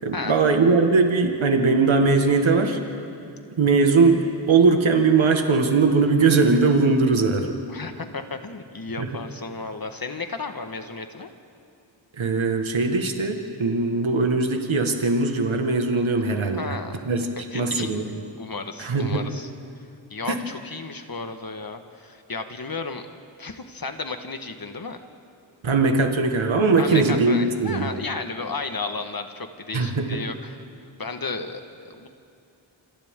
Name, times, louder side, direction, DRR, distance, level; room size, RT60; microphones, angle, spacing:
voice 1, 0.0-2.8 3.6-7.6 9.0-9.1 12.2-16.8 17.1-17.3 17.5-18.1 18.8-19.3 20.3-20.4 25.6-27.9 29.7-30.2, right 4 dB, 75° right, 4 dB, 1.9 m, -20 dB
voice 2, 7.7-11.3 16.5-17.0 17.5-17.9 18.4-19.5 20.1-23.0 23.4-25.0 26.8-30.6 31.0-32.1, left 4 dB, 45° left, 6 dB, 1.7 m, -33 dB
28.0 x 27.0 x 3.8 m, 2.5 s
cardioid pair, 55°, 47 cm